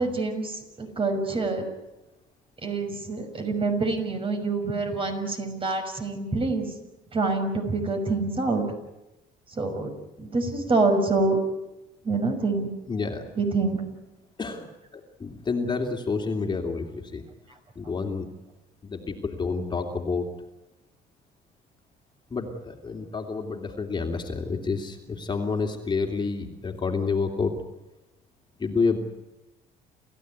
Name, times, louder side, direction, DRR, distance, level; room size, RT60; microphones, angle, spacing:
voice 1, 0.0-1.6 2.6-6.7 7.1-8.6 9.5-9.9 10.2-11.4 12.0-12.7 13.4-13.8, right 3 dB, 30° right, 5 dB, 6.0 m, -26 dB
voice 2, 12.9-13.2 14.4-17.2 17.7-18.3 18.8-20.3 22.3-27.5 28.6-29.0, left 4 dB, 25° left, 3 dB, 3.0 m, -29 dB
28.5 x 15.0 x 9.5 m, 0.99 s
cardioid pair, 110°, 17 cm